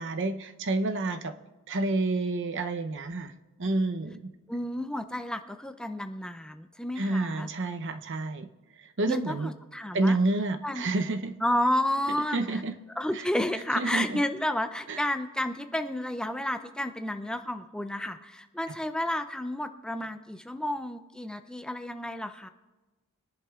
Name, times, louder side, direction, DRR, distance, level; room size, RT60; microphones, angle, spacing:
voice 1, 0.0-1.3 1.7-3.3 3.6-4.3 7.0-8.5 8.8-9.5 9.9-11.3 12.3-12.7 13.1-13.2 13.8-14.2 14.9-15.0, right 2 dB, 55° right, 7 dB, 0.7 m, -29 dB
voice 2, 4.5-7.5 9.1-10.2 10.6-10.8 11.4-12.6 13.0-22.5, left 1 dB, 5° left, 7 dB, 0.4 m, -31 dB
23.0 x 11.0 x 2.4 m, 1.1 s
head